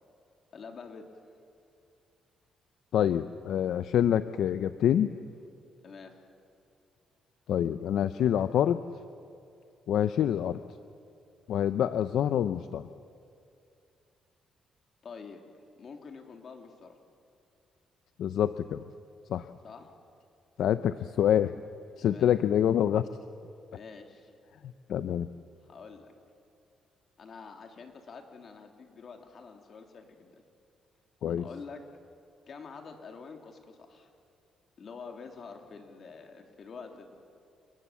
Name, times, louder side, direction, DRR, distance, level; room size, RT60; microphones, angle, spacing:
voice 1, 0.5-1.1 5.8-6.2 15.0-15.4 15.8-17.0 19.6-19.9 22.0-22.3 23.7-24.3 25.7-26.1 27.2-30.4 31.4-31.8 32.5-34.1 34.8-37.2, left 5 dB, 50° left, 3 dB, 3.4 m, -47 dB
voice 2, 2.9-5.1 7.5-8.8 9.9-10.6 11.5-12.9 18.2-18.8 19.3-19.5 20.6-21.5 22.0-23.1 24.9-25.3 31.2-31.5, left 10 dB, 75° left, 12 dB, 0.7 m, -26 dB
30.0 x 20.0 x 7.6 m, 2.6 s
cardioid pair, 90°, 0 cm